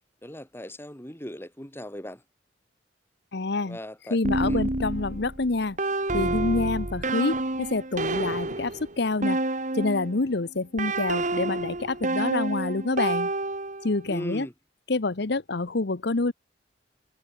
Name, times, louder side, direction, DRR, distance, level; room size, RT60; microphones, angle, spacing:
voice 1, 0.2-2.2 3.6-4.7 14.1-14.5, equal, 15° left, 6.2 m, -38 dB
voice 2, 3.3-3.8 4.1-5.8 6.1-9.4 9.7-13.3 13.8-14.5 14.9-16.3, left 3 dB, 65° left, 0.9 m, -27 dB
sound 1, 4.2-10.2 10.8-14.0, right 2 dB, 45° right, 2.5 m, -29 dB
head